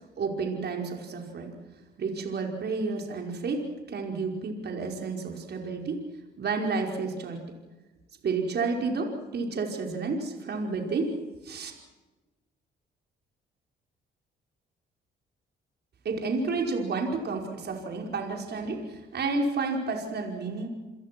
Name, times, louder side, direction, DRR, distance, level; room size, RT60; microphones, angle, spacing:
voice 1, 0.2-1.6 2.0-3.6 3.9-6.0 6.4-7.4 8.2-11.2 11.4-11.7 16.1-20.7, right 4 dB, 55° right, 2 dB, 5.3 m, -30 dB
29.0 x 22.0 x 6.2 m, 1.2 s
cardioid pair, 90°, 20 cm